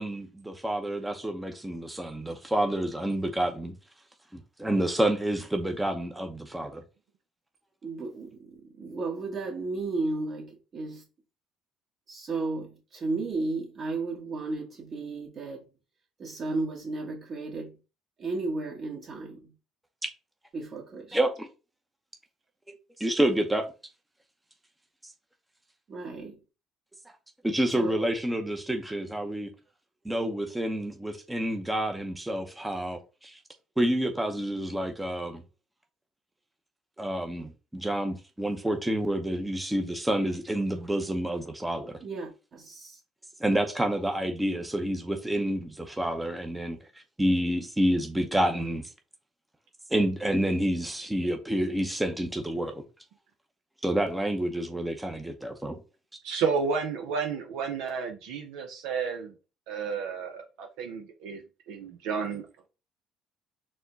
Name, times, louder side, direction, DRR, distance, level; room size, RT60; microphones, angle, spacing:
voice 1, 0.0-3.7 4.6-6.8 21.1-21.5 22.7-23.7 27.4-29.5 30.0-33.4 33.8-35.4 37.0-42.0 43.4-46.8 47.2-48.9 49.9-52.8 53.8-55.8, right 1 dB, 10° right, 0.7 m, -28 dB
voice 2, 7.8-11.0 12.1-15.6 16.2-17.8 18.2-19.5 20.5-21.2 25.9-26.4 27.8-28.1 42.0-43.0, right 3 dB, 45° right, 1.7 m, -34 dB
voice 3, 56.2-59.3 59.7-62.5, right 5 dB, 80° right, 0.6 m, -31 dB
4.2 x 2.2 x 4.0 m
supercardioid pair, 80°, 0 cm